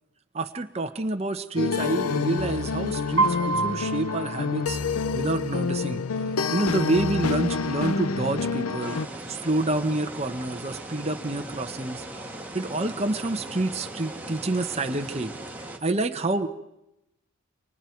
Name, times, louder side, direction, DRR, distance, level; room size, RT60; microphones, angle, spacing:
voice 1, 0.3-4.8 5.1-6.0 6.5-9.0 9.3-15.3 15.8-16.5, right 2 dB, 30° right, 6 dB, 1.0 m, -28 dB
sound 1, 1.6-9.1, left 4 dB, 85° left, 0.8 m, -28 dB
Piano, 3.2-5.2, right 3 dB, 55° right, 1.1 m, -28 dB
sound 2, 8.8-15.8, right 1 dB, 10° right, 1.7 m, -39 dB
29.5 x 25.0 x 4.6 m, 0.87 s
head